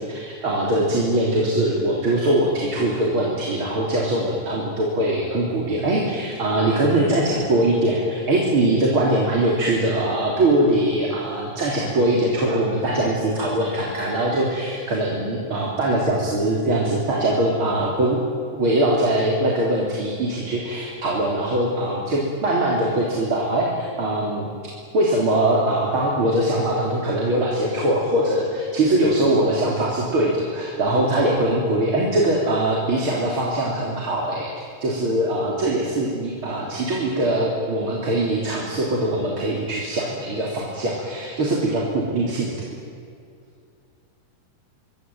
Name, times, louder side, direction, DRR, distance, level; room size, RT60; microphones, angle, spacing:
voice 1, 0.0-18.2 18.5-42.7, right 1 dB, 40° right, -3 dB, 4.1 m, -22 dB
26.0 x 22.5 x 9.3 m, 2.4 s
omnidirectional pair, 3.8 m